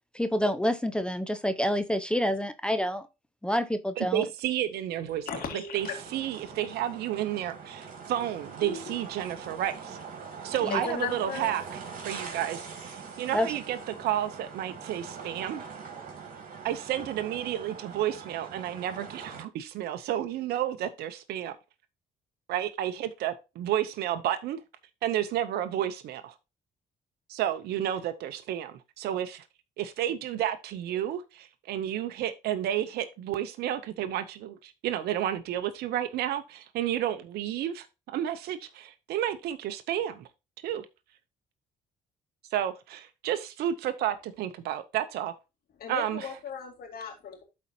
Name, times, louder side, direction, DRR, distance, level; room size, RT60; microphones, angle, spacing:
voice 1, 0.1-3.1 3.4-4.2 10.6-10.8 13.3-13.5, equal, 5° left, 0.7 m, -28 dB
voice 2, 4.0-5.3 5.7-5.9 6.1-10.0 10.4-11.6 12.0-15.7 16.6-21.6 22.5-24.6 25.0-26.3 27.3-29.4 29.8-40.3 40.6-40.9 42.5-45.3 45.9-46.3, right 11 dB, 75° right, 0.7 m, -31 dB
voice 3, 5.3-6.0 8.6-9.0 10.7-11.5 45.8-47.4, left 6 dB, 65° left, 2.4 m, -36 dB
sound 1, 5.8-19.4, right 5 dB, 55° right, 2.6 m, -43 dB
12.0 x 4.3 x 2.8 m
supercardioid pair, 70°, 17 cm